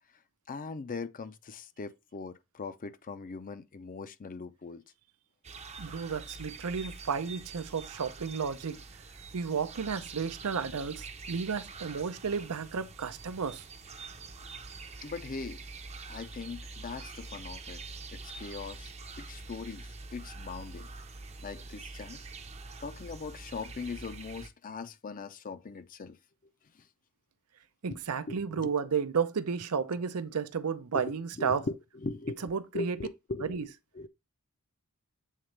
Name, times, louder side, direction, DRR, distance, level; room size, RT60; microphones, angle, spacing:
voice 1, 0.5-4.8 15.0-15.7 16.1-17.8 18.1-18.9 19.2-20.9 21.4-22.2 22.8-26.2 26.8-26.9 28.3-28.7 30.9-33.7 33.9-34.1, left 4 dB, 40° left, 0.5 m, -40 dB
sound 1, 5.4-24.5, right 3 dB, 30° right, 0.7 m, -45 dB
voice 2, 5.8-8.8 9.3-13.6 27.8-31.6 32.4-33.0 33.5-33.7, right 6 dB, 75° right, 0.6 m, -32 dB
7.5 x 3.9 x 3.2 m
head